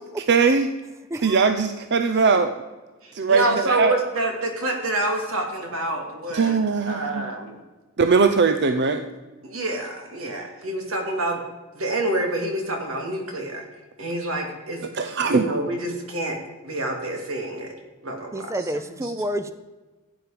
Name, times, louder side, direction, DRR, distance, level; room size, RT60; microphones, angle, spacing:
voice 1, 0.3-0.7 1.2-2.5 3.1-3.9 6.3-7.3 8.0-9.0 14.9-15.4, right 4 dB, 55° right, 8 dB, 0.7 m, -20 dB
voice 2, 1.1-1.4 18.3-19.5, right 1 dB, 15° right, 11 dB, 0.5 m, -29 dB
voice 3, 3.0-7.6 9.4-11.4 11.7-13.7 14.0-14.8 15.3-16.4 16.6-17.7 18.0-18.5 18.7-19.1, right 1 dB, 90° right, 3 dB, 2.8 m, -27 dB
15.5 x 8.9 x 5.1 m, 1.2 s
head